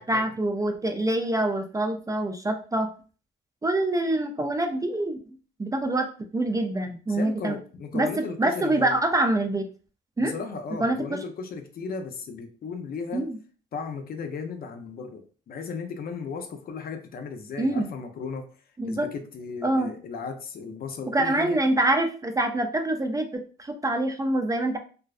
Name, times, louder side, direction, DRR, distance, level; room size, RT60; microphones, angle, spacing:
voice 1, 0.0-2.9 3.6-5.2 5.6-6.1 6.3-7.6 7.9-8.1 8.4-9.6 10.2-10.3 10.8-11.2 13.1-13.4 17.6-17.9 18.8-19.1 19.6-19.9 21.1-24.8, right 1 dB, 15° right, 5 dB, 0.3 m, -25 dB
voice 2, 7.1-9.0 10.2-13.3 13.7-18.5 18.8-21.6, left 5 dB, 50° left, 7 dB, 0.5 m, -36 dB
2.5 x 2.1 x 2.4 m, 0.38 s
cardioid pair, 90°, 20 cm